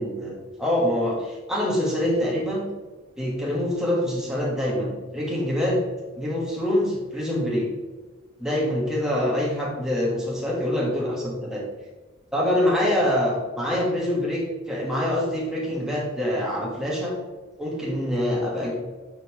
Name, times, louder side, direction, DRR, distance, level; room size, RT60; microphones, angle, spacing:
voice 1, 0.0-2.7 3.2-5.8 6.2-7.7 8.4-11.6 12.3-17.1 17.6-18.7, left 1 dB, ahead, -4 dB, 1.4 m, -25 dB
9.4 x 3.8 x 3.1 m, 1.3 s
head